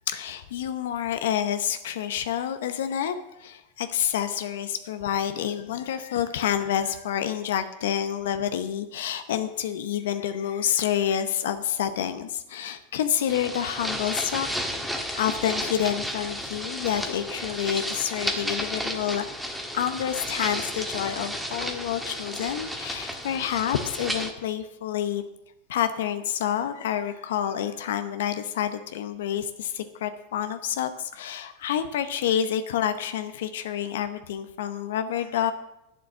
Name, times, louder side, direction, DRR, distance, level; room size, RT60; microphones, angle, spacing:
voice 1, 0.1-14.5 15.1-19.3 19.7-25.2 25.7-35.5, left 10 dB, 75° left, 10 dB, 0.7 m, -28 dB
sound 1, 13.3-24.3, equal, ahead, 1.4 m, -33 dB
8.5 x 7.0 x 7.3 m, 0.87 s
hypercardioid pair, 105°, 0 cm